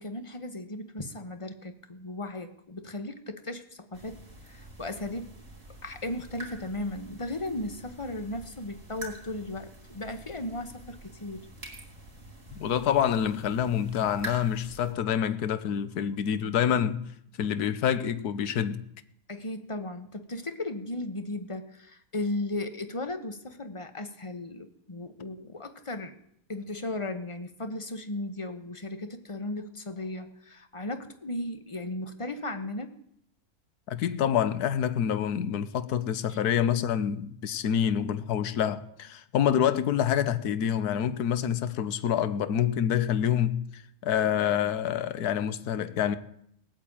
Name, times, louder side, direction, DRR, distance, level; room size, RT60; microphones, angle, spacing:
voice 1, 0.0-5.3 5.8-11.5 19.3-26.1 26.5-33.0 36.3-36.4, left 2 dB, 20° left, 1.2 m, -36 dB
sound 1, 3.9-14.9, right 1 dB, 50° right, 3.7 m, -46 dB
voice 2, 12.5-17.1 17.4-18.8 33.9-46.2, left 9 dB, 75° left, 1.4 m, -27 dB
18.5 x 8.9 x 8.8 m
omnidirectional pair, 1.7 m